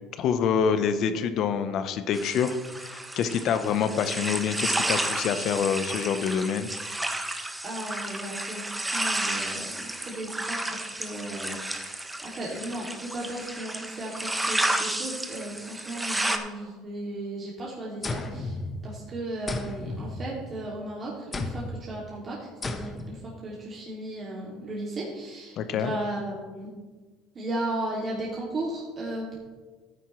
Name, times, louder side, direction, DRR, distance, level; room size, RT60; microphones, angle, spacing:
voice 1, 0.2-6.7 25.6-25.9, left 7 dB, 55° left, 10 dB, 0.9 m, -26 dB
sound 1, 2.1-16.4, right 1 dB, 10° right, 1.0 m, -32 dB
voice 2, 7.6-18.6 18.8-26.7 27.3-29.4, right 1 dB, 35° right, -5 dB, 2.6 m, -35 dB
sound 2, 18.0-19.1 19.5-20.7 21.3-21.9 22.6-23.2, left 2 dB, 25° left, 1.0 m, -34 dB
13.5 x 9.7 x 3.2 m, 1.4 s
supercardioid pair, 115°, 0 cm